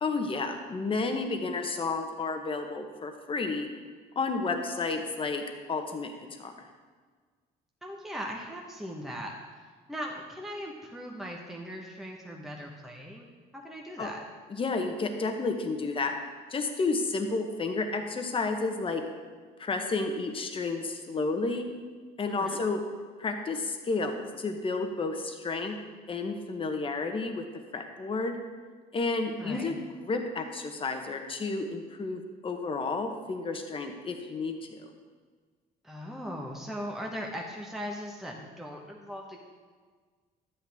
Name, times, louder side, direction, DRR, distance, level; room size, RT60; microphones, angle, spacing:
voice 1, 0.0-3.7 4.1-5.4 5.7-6.1 6.4-6.7 14.0-14.1 14.5-16.1 16.5-19.0 19.6-21.7 22.2-22.8 23.2-25.8 26.1-27.4 27.7-28.4 28.9-34.9, left 3 dB, 30° left, 5 dB, 1.1 m, -31 dB
voice 2, 7.8-9.3 9.9-13.3 13.5-14.2 22.3-22.6 29.4-29.7 35.8-39.4, equal, ahead, -1 dB, 1.1 m, -39 dB
12.0 x 8.4 x 3.5 m, 1.5 s
cardioid pair, 110°, 17 cm